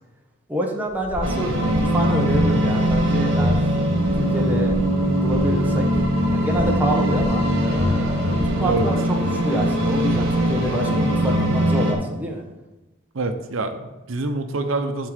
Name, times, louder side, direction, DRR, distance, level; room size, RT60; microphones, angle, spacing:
voice 1, 0.5-3.6 4.2-4.8 5.1-5.9 6.2-9.0 9.4-12.4, equal, 10° right, 0 dB, 1.0 m, -27 dB
sound 1, 0.9-8.8, equal, 35° right, 3.0 m, -33 dB
sound 2, 1.2-11.9, equal, 65° right, 1.9 m, -21 dB
voice 2, 13.1-15.1, right 2 dB, 80° right, 7 dB, 0.7 m, -26 dB
10.5 x 3.7 x 5.1 m, 1.1 s
head